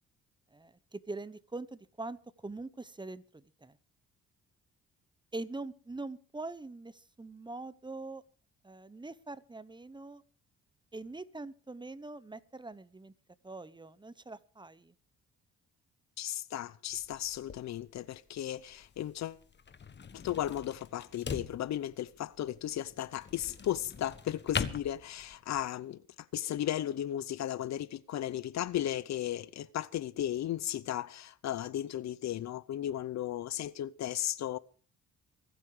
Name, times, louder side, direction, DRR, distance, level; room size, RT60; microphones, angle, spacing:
voice 1, 0.5-3.7 5.3-8.2 8.6-10.2 10.9-13.1 13.4-14.9, right 2 dB, 15° right, 0.9 m, -43 dB
voice 2, 16.2-19.4 20.1-26.0 26.3-34.6, left 12 dB, 65° left, 0.7 m, -35 dB
sound 1, 16.9-25.6, left 6 dB, 35° left, 1.4 m, -42 dB
24.5 x 8.5 x 4.9 m
cardioid pair, 90°, 30 cm